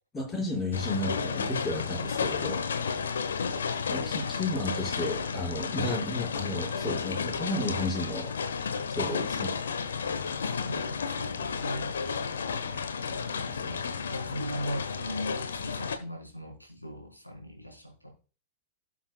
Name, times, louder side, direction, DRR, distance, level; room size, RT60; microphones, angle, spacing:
voice 1, 0.1-2.6 3.9-8.3 8.9-9.5, left 2 dB, 15° left, -1 dB, 6.0 m, -33 dB
sound 1, 0.7-16.0, left 5 dB, 65° left, 1.2 m, -32 dB
voice 2, 10.4-11.9 13.1-18.1, equal, 90° left, 0 dB, 4.1 m, -39 dB
18.0 x 7.2 x 2.4 m, 0.35 s
figure-of-eight pair, 95°, 0 cm